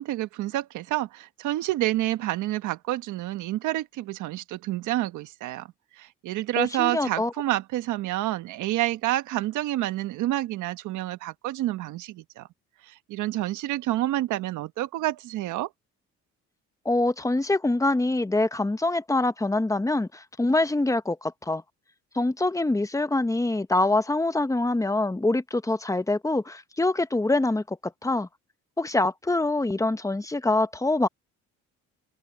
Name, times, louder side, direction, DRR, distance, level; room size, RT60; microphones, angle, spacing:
voice 1, 0.0-5.7 6.0-12.5 13.1-15.7, right 15 dB, 85° right, 1.4 m, -28 dB
voice 2, 6.6-7.3 16.8-21.6 22.1-28.3 28.8-31.1, left 2 dB, 10° left, 1.1 m, -25 dB
open air
cardioid pair, 85°, 30 cm